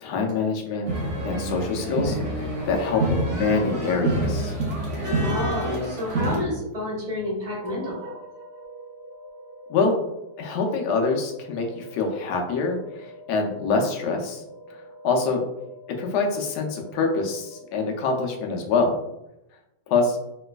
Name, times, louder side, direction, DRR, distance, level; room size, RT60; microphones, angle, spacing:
voice 1, 0.0-0.9 1.2-4.5 9.7-10.0 10.4-14.8 15.0-15.4 16.0-19.0 19.9-20.2, left 4 dB, 85° left, 2 dB, 1.2 m, -25 dB
sound 1, 0.9-6.4, right 1 dB, 60° right, 0.9 m, -27 dB
voice 2, 5.2-8.2, left 1 dB, 25° right, -5 dB, 1.0 m, -30 dB
sound 2, 7.5-18.1, equal, 80° right, 1.7 m, -45 dB
3.2 x 3.0 x 2.2 m, 0.89 s
omnidirectional pair, 1.7 m